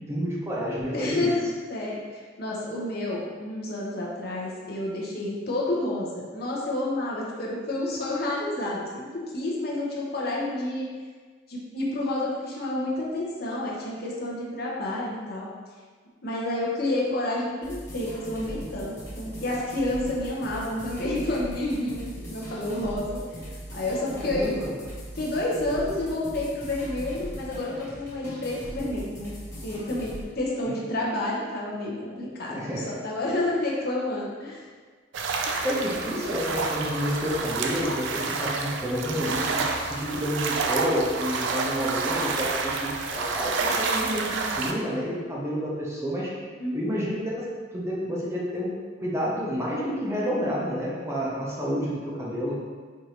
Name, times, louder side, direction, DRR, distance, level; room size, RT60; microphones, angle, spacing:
voice 1, 0.1-1.3 24.1-24.7 30.7-30.8 32.2-33.0 35.6-46.3 46.7-47.4 47.7-48.7 49.0-52.6, equal, 15° right, -6 dB, 0.6 m, -29 dB
voice 2, 0.9-1.4 1.7-10.9 11.5-15.5 16.2-23.2 23.7-24.5 25.1-29.3 29.6-34.6 46.6-46.9, left 1 dB, 50° left, -4 dB, 0.7 m, -29 dB
sound 1, 17.6-30.2, equal, 15° left, 0.9 m, -39 dB
sound 2, 35.1-44.7, right 4 dB, 65° right, 0.3 m, -29 dB
4.7 x 2.6 x 2.8 m, 1.5 s
head